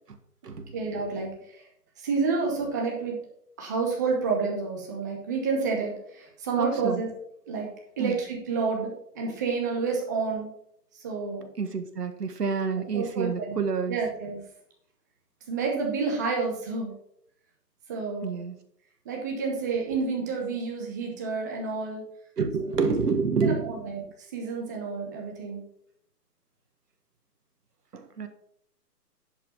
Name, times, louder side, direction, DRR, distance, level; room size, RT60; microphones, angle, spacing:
voice 1, 0.7-1.6 2.0-3.2 3.6-7.1 7.5-7.7 8.0-10.5 10.9-11.5 12.9-14.4 15.5-16.9 17.9-18.4 19.0-22.0 23.4-24.0 24.3-25.6, right 4 dB, 10° right, 0 dB, 0.9 m, -29 dB
voice 2, 6.6-7.0 8.0-8.1 11.6-14.0 18.2-18.6 22.4-23.8 27.9-28.3, right 5 dB, 70° right, 7 dB, 1.7 m, -28 dB
10.5 x 5.2 x 5.7 m, 0.71 s
hypercardioid pair, 160°, 49 cm